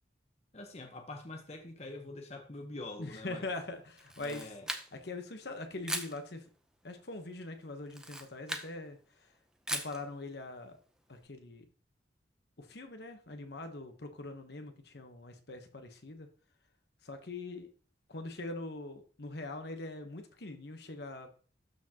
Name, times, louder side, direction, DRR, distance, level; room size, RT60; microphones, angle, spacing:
voice 1, 0.5-3.5 4.2-4.7, left 2 dB, 35° left, 0.9 m, -45 dB
voice 2, 3.0-4.5 4.9-6.5 6.8-9.4 9.7-10.8 11.1-11.6 12.6-16.3 17.0-17.7 18.1-21.3, left 2 dB, 60° left, 1.0 m, -43 dB
Camera, 4.0-5.2 5.8-6.2 7.9-8.7 9.7-10.0, right 1 dB, 5° right, 0.6 m, -38 dB
12.5 x 4.5 x 2.9 m
head